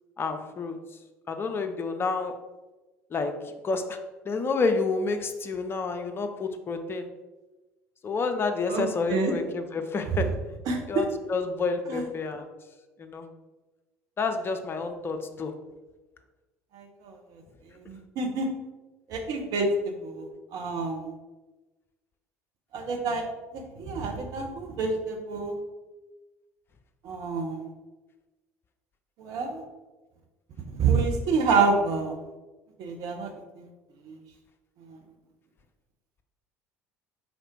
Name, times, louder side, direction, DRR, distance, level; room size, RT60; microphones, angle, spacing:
voice 1, 0.2-0.8 1.3-2.3 3.1-3.3 3.6-4.0 4.3-7.1 8.0-10.3 10.9-12.5 13.0-13.3 14.2-15.5, left 4 dB, 30° left, 6 dB, 0.7 m, -29 dB
voice 2, 8.7-9.3 10.1-10.2 10.7-11.1 11.9-12.0 16.7-17.4 17.8-18.5 19.1-21.1 22.7-23.2 23.5-25.6 27.0-27.6 29.2-29.6 30.7-32.1 32.8-33.3 33.6-33.7 34.0-34.2 34.8-35.0, right 4 dB, 50° right, 3 dB, 1.1 m, -28 dB
4.9 x 4.1 x 4.6 m, 1.2 s
figure-of-eight pair, 60°, 8 cm